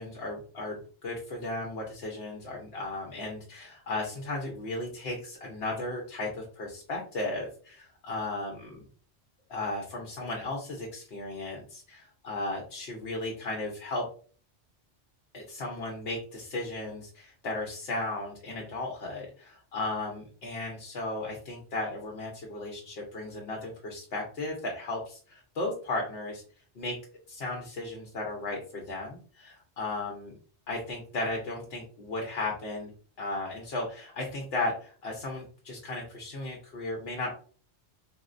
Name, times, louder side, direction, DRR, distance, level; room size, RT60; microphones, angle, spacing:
voice 1, 0.0-8.8 9.5-14.0 15.3-26.4 26.8-27.0 27.3-30.4 30.7-32.9 33.2-37.3, left 2 dB, 65° left, 0 dB, 0.9 m, -35 dB
4.3 x 2.0 x 2.4 m, 0.42 s
omnidirectional pair, 1.2 m